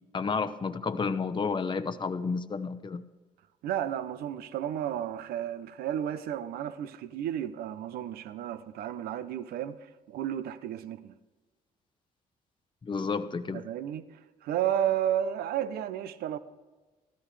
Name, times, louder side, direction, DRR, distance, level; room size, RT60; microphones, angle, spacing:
voice 1, 0.1-3.0 12.8-13.6, left 5 dB, 30° left, 0.8 m, -31 dB
voice 2, 3.6-11.1 13.5-16.4, right 10 dB, 75° right, 0.7 m, -32 dB
15.0 x 13.5 x 3.3 m
supercardioid pair, 55°, 16 cm